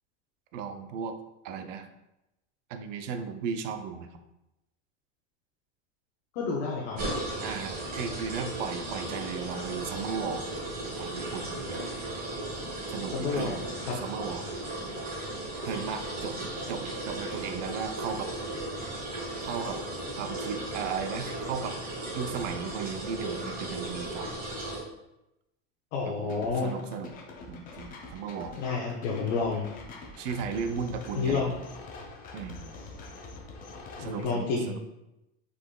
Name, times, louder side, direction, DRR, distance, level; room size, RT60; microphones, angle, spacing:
voice 1, 0.5-1.2 1.4-1.9 2.7-4.1 7.4-10.5 11.0-11.7 12.9-13.7 14.0-14.5 15.6-16.4 16.7-18.3 19.4-19.8 20.2-21.8 22.1-24.3 26.1-27.1 27.5-28.5 30.2-31.5 32.3-32.7 34.0-34.8, right 6 dB, 75° right, 7 dB, 0.6 m, -35 dB
voice 2, 6.3-7.0 13.1-14.0 25.9-26.7 28.6-29.6 31.1-31.6 34.0-34.8, left 4 dB, 65° left, -3 dB, 0.9 m, -30 dB
sound 1, 7.0-24.8, right 1 dB, 25° right, 1.3 m, -36 dB
sound 2, 26.3-34.2, left 3 dB, 25° left, 0.5 m, -45 dB
5.1 x 4.0 x 2.2 m, 0.91 s
supercardioid pair, 150°, 37 cm